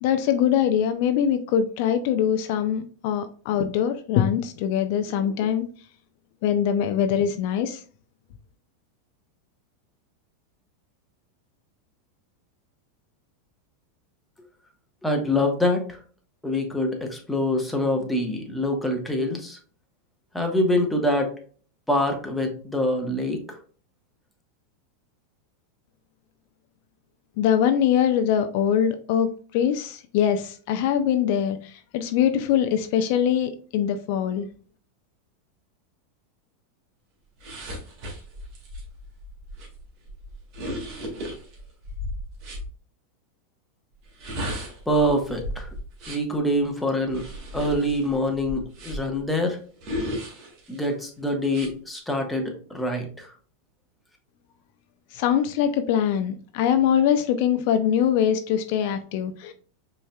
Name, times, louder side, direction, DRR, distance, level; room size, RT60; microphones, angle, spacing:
voice 1, 0.0-5.7 6.4-7.8 27.4-34.5 55.1-59.5, left 9 dB, 60° left, 9 dB, 0.5 m, -23 dB
voice 2, 15.0-16.0 16.4-19.6 20.3-21.3 21.9-23.6 44.9-45.7 46.1-47.2 47.5-49.6 50.7-53.3, left 1 dB, 5° left, 2 dB, 1.2 m, -25 dB
sound 1, 37.4-42.7 44.0-46.4 47.1-49.2 49.8-50.9 51.5-51.7, equal, 50° right, 1.8 m, -35 dB
5.3 x 3.4 x 2.3 m, 0.42 s
hypercardioid pair, 105°, 0 cm